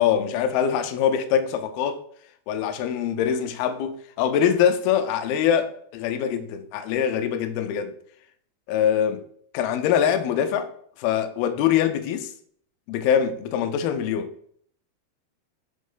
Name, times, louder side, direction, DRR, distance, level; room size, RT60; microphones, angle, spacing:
voice 1, 0.0-2.0 2.5-7.9 8.7-9.2 9.5-10.7 11.0-12.3 12.9-14.3, left 8 dB, 80° left, 2.4 m, -23 dB
6.3 x 3.6 x 5.4 m
omnidirectional pair, 4.4 m